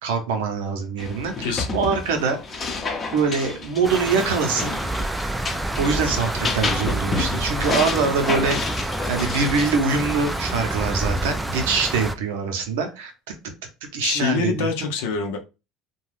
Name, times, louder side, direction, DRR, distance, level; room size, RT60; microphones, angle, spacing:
voice 1, 0.0-2.7 3.1-4.8 5.8-8.6 8.8-13.1 13.9-14.7, right 5 dB, 85° right, 5 dB, 0.7 m, -24 dB
sound 1, 1.0-10.8, left 3 dB, 35° left, 0.6 m, -30 dB
sound 2, 3.8-12.2, right 2 dB, 10° right, 0.3 m, -28 dB
voice 2, 14.0-15.4, left 5 dB, 80° left, 3 dB, 0.6 m, -25 dB
2.4 x 2.2 x 3.3 m, 0.29 s
supercardioid pair, 85°, 0 cm